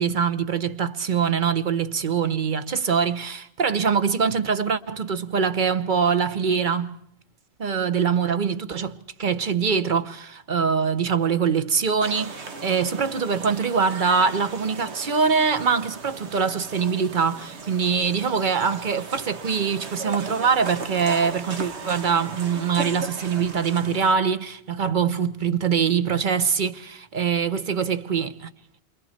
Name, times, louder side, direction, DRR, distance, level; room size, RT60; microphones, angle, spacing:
voice 1, 0.0-7.0 7.6-28.5, right 6 dB, 45° right, 1.1 m, -23 dB
sound 1, 12.0-24.1, right 4 dB, 75° right, 1.5 m, -37 dB
29.0 x 24.5 x 4.4 m
omnidirectional pair, 1.2 m